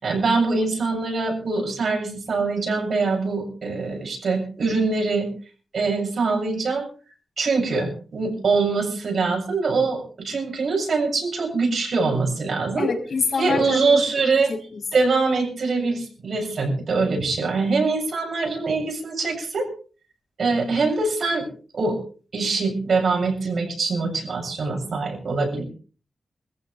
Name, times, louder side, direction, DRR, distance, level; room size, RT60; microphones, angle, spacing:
voice 1, 0.0-5.3 5.7-6.9 7.4-12.9 13.3-14.5 14.9-19.7 20.4-21.5 21.7-22.0 22.3-25.6, right 3 dB, 65° right, 1 dB, 7.1 m, -23 dB
voice 2, 12.8-14.0 14.5-14.6, left 5 dB, 60° left, 1 dB, 5.5 m, -25 dB
23.0 x 15.0 x 3.4 m, 0.38 s
wide cardioid pair, 105°, 0 cm